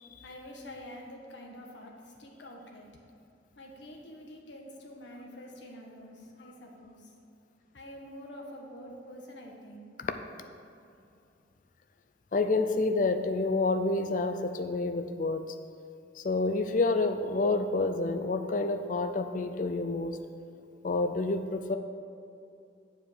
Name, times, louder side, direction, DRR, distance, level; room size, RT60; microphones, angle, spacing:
voice 1, 0.2-2.9 3.6-7.1 7.7-9.9 11.0-11.1, equal, 80° left, 0 dB, 1.3 m, -47 dB
voice 2, 12.3-15.5 16.2-20.2 20.8-21.8, left 3 dB, 45° left, 8 dB, 0.4 m, -28 dB
7.8 x 4.8 x 6.8 m, 2.5 s
head